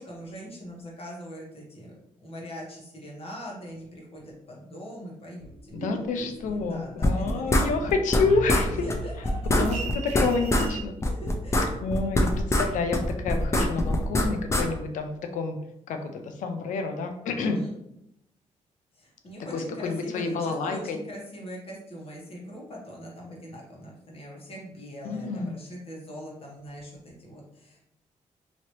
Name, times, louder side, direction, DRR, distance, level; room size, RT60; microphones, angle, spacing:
voice 1, 0.0-1.9 2.2-7.7 8.8-9.1 11.0-12.1 17.3-17.7 18.9-27.8, equal, 50° left, -3 dB, 1.3 m, -42 dB
sound 1, 5.4-7.1 7.4-10.8, right 3 dB, 60° right, 0.7 m, -37 dB
voice 2, 5.7-8.9 9.6-10.9 11.8-15.6 15.9-17.6 19.4-21.0 25.0-25.6, left 4 dB, 80° left, 6 dB, 0.5 m, -29 dB
sound 2, 7.0-8.2 8.5-8.6 8.9-9.0 9.2-10.7 11.0-12.7 12.9-14.6, left 1 dB, 20° left, 0.5 m, -23 dB
2.9 x 2.8 x 3.0 m, 0.81 s
cardioid pair, 75°, 13 cm